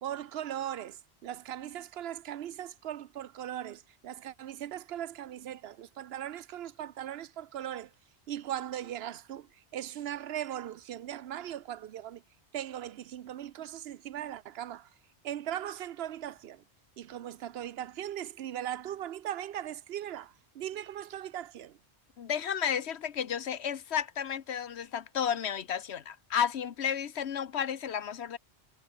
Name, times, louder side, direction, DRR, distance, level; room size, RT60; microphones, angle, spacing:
voice 1, 0.0-7.9 8.3-12.2 12.5-14.9 15.2-16.6 17.0-21.8, right 11 dB, 65° right, 0.8 m, -39 dB
voice 2, 22.2-28.4, left 8 dB, 70° left, 1.2 m, -32 dB
omnidirectional pair, 1.2 m